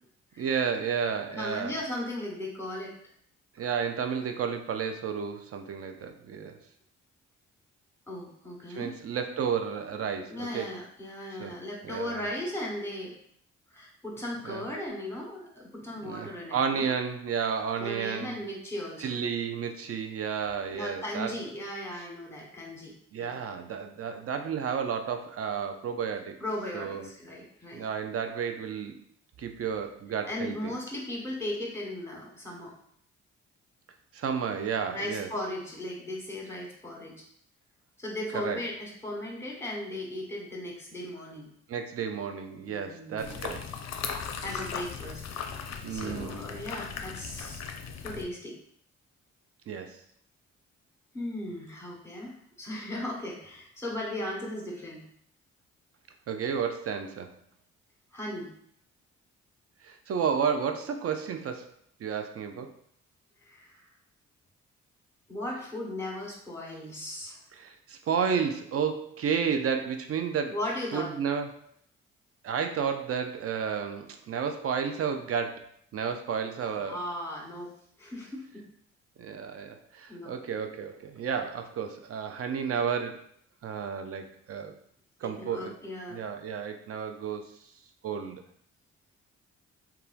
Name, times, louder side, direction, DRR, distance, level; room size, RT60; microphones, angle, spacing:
voice 1, 0.4-1.8 3.6-6.6 8.7-10.7 11.4-11.5 11.8-12.3 14.4-14.6 16.0-18.4 19.0-21.3 23.1-26.4 26.7-27.1 27.7-29.0 29.4-30.7 34.1-35.3 38.3-38.6 41.7-43.6 45.8-46.4 49.7-50.0 56.3-57.4 59.8-61.7 62.0-62.7 67.5-70.5 70.9-71.5 72.4-77.0 79.2-83.2 83.6-84.7 85.2-85.7 86.1-87.5 88.0-88.4, right 7 dB, 50° right, 6 dB, 0.4 m, -32 dB
voice 2, 1.3-2.9 8.1-8.9 10.3-13.1 13.7-16.9 17.8-19.1 20.7-22.9 23.2-23.4 26.4-27.9 30.3-32.7 34.9-37.2 38.0-41.5 42.7-43.4 44.4-45.2 45.9-47.6 48.0-48.6 51.1-55.1 58.1-58.5 63.4-63.9 65.3-67.4 70.5-71.1 76.7-78.7 80.1-80.4 85.2-86.2, left 1 dB, 10° left, -2 dB, 1.1 m, -37 dB
sound 1, 43.2-48.2, left 6 dB, 55° left, 0.4 m, -38 dB
2.9 x 2.3 x 2.4 m, 0.65 s
supercardioid pair, 50°, 31 cm